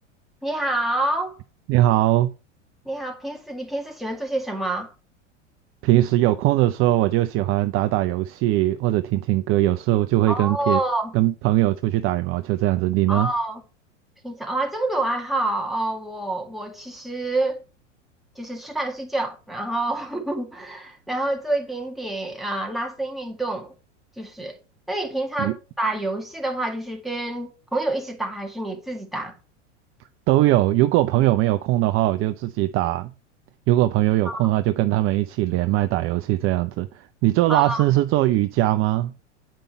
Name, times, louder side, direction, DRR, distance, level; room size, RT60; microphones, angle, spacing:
voice 1, 0.4-1.4 2.9-4.9 10.3-11.1 13.1-13.6 14.2-17.6 18.4-23.7 24.2-24.6 24.9-29.4 34.3-34.4 37.5-37.8, right 2 dB, ahead, 1.8 m, -27 dB
voice 2, 1.7-2.3 5.8-10.8 11.1-13.3 25.4-25.5 30.3-33.1 33.7-39.1, right 15 dB, 35° right, 0.5 m, -20 dB
9.0 x 5.2 x 4.3 m
hypercardioid pair, 95°, 36 cm